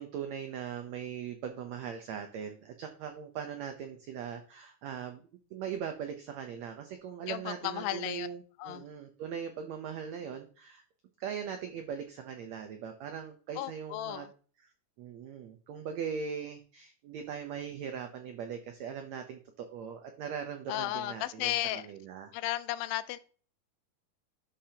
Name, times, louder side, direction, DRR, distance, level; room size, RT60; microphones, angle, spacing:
voice 1, 0.0-5.2 5.5-10.8 11.2-14.3 15.0-22.3, right 7 dB, 90° right, 1.5 m, -40 dB
voice 2, 7.3-8.3 8.6-8.9 13.6-14.3 20.7-21.9 22.3-23.2, left 15 dB, 80° left, 2.2 m, -34 dB
11.5 x 6.7 x 2.8 m
omnidirectional pair, 4.2 m